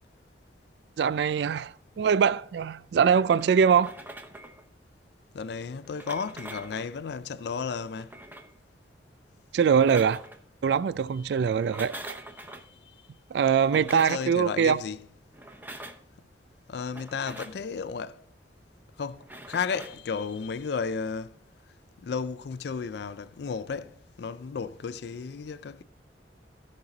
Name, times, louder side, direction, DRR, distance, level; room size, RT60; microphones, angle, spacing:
voice 1, 1.0-3.9 9.5-10.2 10.6-12.2 13.3-14.8, right 7 dB, 65° right, 0.3 m, -23 dB
sound 1, 3.4-4.6 5.8-6.9 7.9-8.5 9.6-10.4 11.5-12.7 13.6-14.3 15.3-16.1 16.9-17.6 19.2-20.0, right 1 dB, 10° right, 0.7 m, -44 dB
voice 2, 5.3-8.1 11.3-11.4 12.6-12.7 13.4-15.0 16.7-18.2 19.0-21.3 22.0-25.8, left 5 dB, 60° left, 0.4 m, -34 dB
14.5 x 5.4 x 3.9 m
head